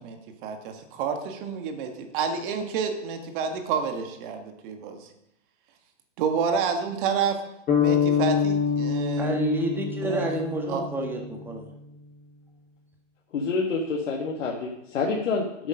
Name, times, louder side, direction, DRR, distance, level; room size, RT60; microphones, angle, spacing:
voice 1, 0.0-5.1 6.2-7.4 7.8-9.4 10.0-10.3 10.7-10.8, right 6 dB, 40° right, 6 dB, 1.8 m, -29 dB
sound 1, 7.7-11.6, left 7 dB, 20° left, 3.9 m, -26 dB
voice 2, 9.2-11.7, right 1 dB, 5° right, 1 dB, 1.6 m, -29 dB
voice 3, 13.3-15.7, left 4 dB, 70° left, -1 dB, 1.9 m, -27 dB
10.5 x 8.3 x 5.2 m, 0.81 s
hypercardioid pair, 135°, 38 cm